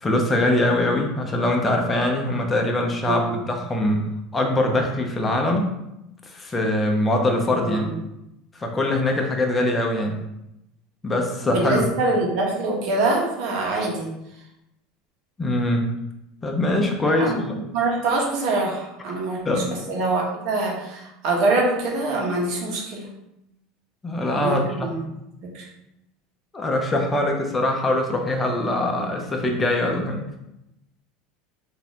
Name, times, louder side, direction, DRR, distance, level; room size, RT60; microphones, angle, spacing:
voice 1, 0.0-4.1 4.3-5.7 6.3-7.9 8.5-10.2 11.0-11.9 15.4-15.9 16.4-17.6 19.4-19.8 24.0-24.9 26.5-30.2, left 1 dB, 20° left, 1 dB, 0.7 m, -23 dB
voice 2, 3.1-3.4 7.5-7.9 11.4-14.1 17.2-17.4 17.7-19.4 19.9-23.1 24.4-25.0 25.4-25.6, right 2 dB, 65° right, -1 dB, 1.2 m, -24 dB
4.0 x 2.8 x 3.7 m, 0.86 s
supercardioid pair, 95°, 0 cm